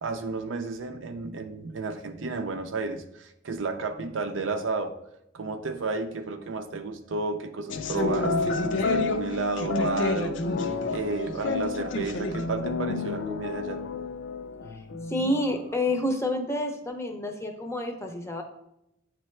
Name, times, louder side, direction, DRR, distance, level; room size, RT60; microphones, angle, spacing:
voice 1, 0.0-5.0 5.3-10.4 10.9-13.8, right 3 dB, 70° right, 7 dB, 0.5 m, -32 dB
sound 1, 7.7-15.7, left 3 dB, 65° left, 0.5 m, -29 dB
voice 2, 15.1-18.4, left 1 dB, 15° left, 4 dB, 0.6 m, -28 dB
8.9 x 3.3 x 3.2 m, 0.83 s
head